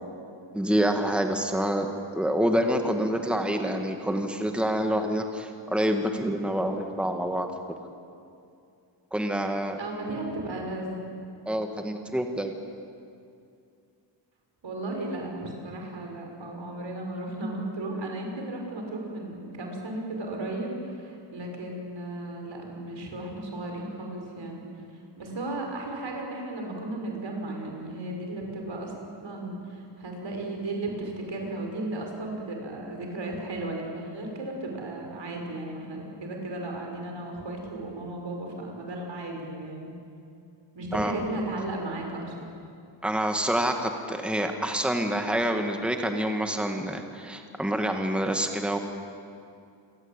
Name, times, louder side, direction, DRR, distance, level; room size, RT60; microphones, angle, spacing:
voice 1, 0.5-7.5 9.1-9.8 11.5-12.5 40.9-41.2 43.0-48.8, right 1 dB, ahead, 4 dB, 2.0 m, -27 dB
voice 2, 9.8-11.1 14.6-28.9 29.2-39.9 40.7-42.3, right 2 dB, 75° right, 1 dB, 6.3 m, -35 dB
28.5 x 23.0 x 9.0 m, 2.5 s
wide cardioid pair, 105°, 45 cm